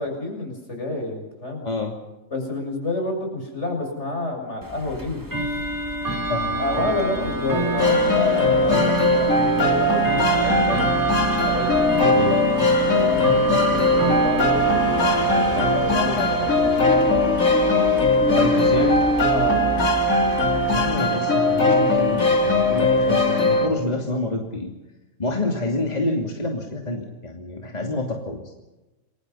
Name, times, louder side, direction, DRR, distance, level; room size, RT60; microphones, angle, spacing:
voice 1, 0.0-1.6 2.3-5.3 6.6-10.8 11.4-12.2 12.8-17.4 19.3-19.6, left 2 dB, 55° left, 2 dB, 7.6 m, -29 dB
Bell / Tick-tock, 4.6-21.0, right 2 dB, 15° right, 2.6 m, -28 dB
voice 2, 6.3-7.3 12.1-12.4 15.5-15.7 18.3-19.0 20.7-24.7 25.2-28.4, left 2 dB, 30° left, 1 dB, 2.9 m, -28 dB
sound 1, 7.8-23.7, left 1 dB, 90° left, 3.6 m, -20 dB
29.0 x 23.0 x 5.7 m, 1.0 s
omnidirectional pair, 1.4 m